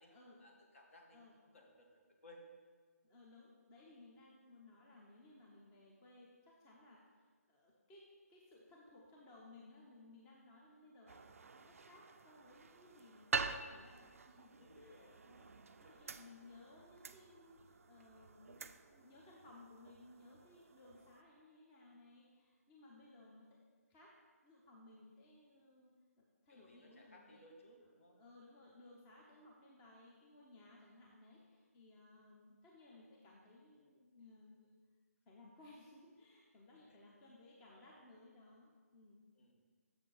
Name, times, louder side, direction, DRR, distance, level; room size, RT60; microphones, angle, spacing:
voice 1, 0.4-2.5 14.6-15.9 26.5-28.2 36.9-37.0 37.7-37.9 39.4-39.6, left 1 dB, 55° left, 1 dB, 1.4 m, -62 dB
voice 2, 3.0-11.2 11.5-23.6 23.9-24.1 24.4-27.4 28.1-34.8 35.3-39.2, left 2 dB, 15° left, -3 dB, 0.7 m, -61 dB
sound 1, 11.1-21.2, right 4 dB, 60° right, 0.4 m, -47 dB
6.9 x 6.1 x 4.0 m, 1.5 s
figure-of-eight pair, 150°, 9 cm